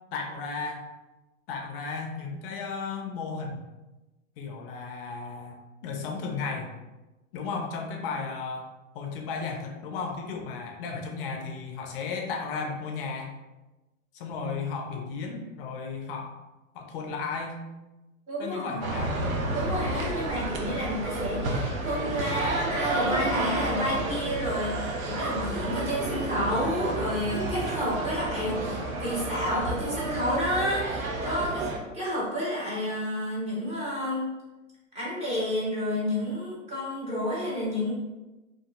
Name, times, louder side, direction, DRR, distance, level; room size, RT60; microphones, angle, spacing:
voice 1, 0.1-0.8 1.5-3.7 4.4-5.5 5.8-6.7 7.3-8.7 8.9-13.3 14.1-16.3 16.7-17.6 18.4-19.2, left 4 dB, 45° left, 2 dB, 0.5 m, -34 dB
voice 2, 18.3-19.0 19.5-34.3 34.9-38.0, equal, 15° right, -8 dB, 1.1 m, -30 dB
sound 1, 18.8-31.8, right 2 dB, 90° right, 0.6 m, -31 dB
2.6 x 2.6 x 2.4 m, 1.1 s
hypercardioid pair, 115°, 40 cm